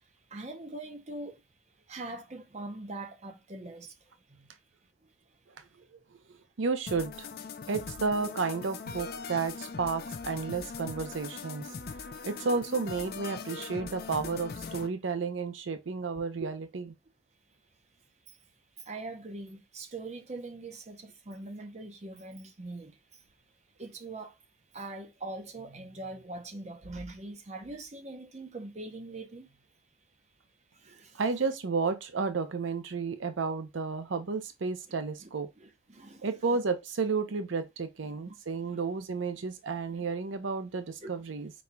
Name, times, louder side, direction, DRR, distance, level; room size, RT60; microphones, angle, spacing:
voice 1, 0.3-1.4 1.9-3.9 4.3-4.5 18.9-22.9 23.8-24.3 24.7-29.5 30.8-31.2 34.9-35.3 35.6-36.5 38.0-38.3 38.6-38.8 40.0-40.1 41.0-41.1, right 2 dB, 35° right, 0.7 m, -42 dB
voice 2, 6.6-7.3 7.7-11.8 12.2-16.9 31.1-35.5 36.2-41.5, right 4 dB, 80° right, 0.6 m, -32 dB
sound 1, 6.9-14.9, left 5 dB, 50° left, 0.5 m, -41 dB
4.3 x 4.2 x 2.2 m
head